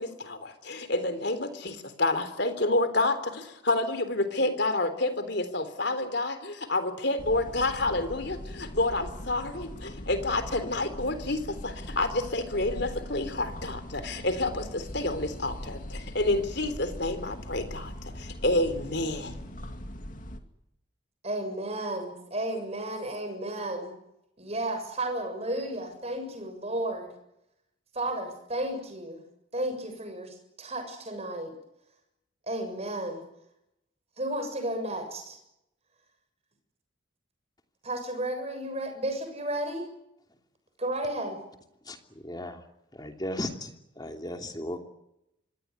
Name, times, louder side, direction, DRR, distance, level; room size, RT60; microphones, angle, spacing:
voice 1, 0.0-19.3, left 2 dB, 55° left, 11 dB, 3.7 m, -29 dB
sound 1, 7.2-20.4, equal, 40° left, 2.4 m, -41 dB
voice 2, 21.2-23.9 24.4-27.1 27.9-29.2 29.5-31.5 32.5-33.2 34.2-35.4 37.8-39.9 40.8-41.4, right 1 dB, 30° right, 6 dB, 7.0 m, -33 dB
voice 3, 42.2-42.6 42.9-44.8, left 1 dB, 20° left, 5 dB, 2.9 m, -36 dB
25.5 x 20.0 x 9.6 m, 0.82 s
head